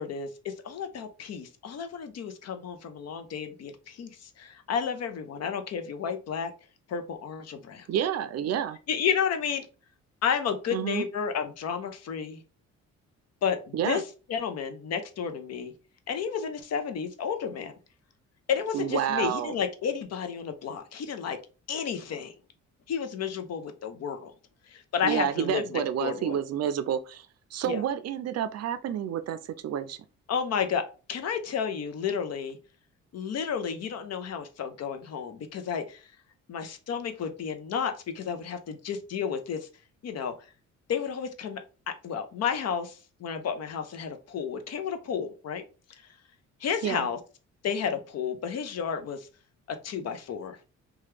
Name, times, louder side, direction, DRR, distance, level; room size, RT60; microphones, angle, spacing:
voice 1, 0.0-6.5 6.9-7.9 8.9-9.7 10.2-12.4 13.4-14.0 14.3-15.7 16.1-17.7 18.5-21.4 21.7-22.3 22.9-24.3 24.7-26.4 27.6-27.8 30.3-32.6 33.1-36.1 36.5-39.7 40.0-40.3 40.9-41.6 42.0-45.6 46.6-47.2 47.6-49.3 49.8-50.7, left 7 dB, 55° left, 0.6 m, -31 dB
voice 2, 7.9-8.8 10.7-11.0 13.7-14.0 18.7-19.5 25.0-27.3 27.5-30.0 46.8-47.1, right 9 dB, 60° right, 0.4 m, -29 dB
2.9 x 2.3 x 3.2 m
cardioid pair, 90°, 30 cm